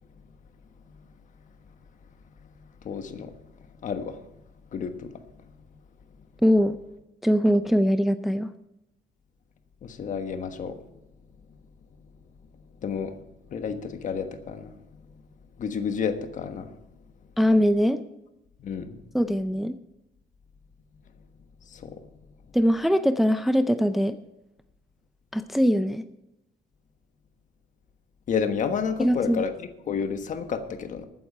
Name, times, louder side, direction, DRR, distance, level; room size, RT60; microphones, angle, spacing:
voice 1, 2.8-3.3 3.8-4.2 4.7-5.1 9.8-10.8 12.8-13.1 13.5-14.8 15.6-16.7 18.6-19.0 21.7-22.0 28.3-31.0, left 6 dB, 50° left, 8 dB, 1.3 m, -30 dB
voice 2, 6.4-6.8 7.2-8.5 17.4-18.0 19.1-19.8 22.5-24.2 25.3-26.0 29.0-29.4, equal, ahead, 10 dB, 0.5 m, -22 dB
13.5 x 9.3 x 5.5 m, 0.90 s
cardioid pair, 110°, 17 cm